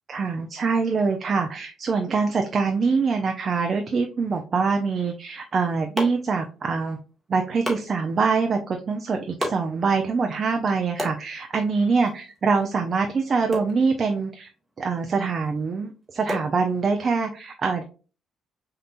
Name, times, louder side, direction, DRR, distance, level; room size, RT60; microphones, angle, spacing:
voice 1, 0.1-7.0 7.3-14.5 14.8-17.8, right 4 dB, 45° right, 4 dB, 0.5 m, -24 dB
sound 1, 5.3-17.2, equal, 10° right, 1.7 m, -38 dB
5.2 x 2.8 x 2.5 m, 0.35 s
cardioid pair, 90°, 0 cm